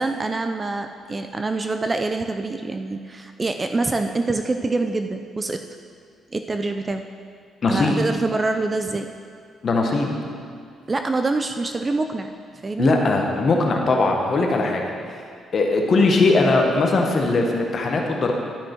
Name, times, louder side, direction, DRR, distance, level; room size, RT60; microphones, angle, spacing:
voice 1, 0.0-5.6 6.3-7.0 7.7-9.0 10.9-12.3 12.6-12.9, right 3 dB, 25° right, 6 dB, 0.4 m, -25 dB
voice 2, 7.6-8.0 9.6-10.1 12.8-14.9 15.5-18.3, left 3 dB, 50° left, 1 dB, 1.2 m, -20 dB
12.0 x 6.1 x 4.5 m, 2.3 s
cardioid pair, 90°, 0 cm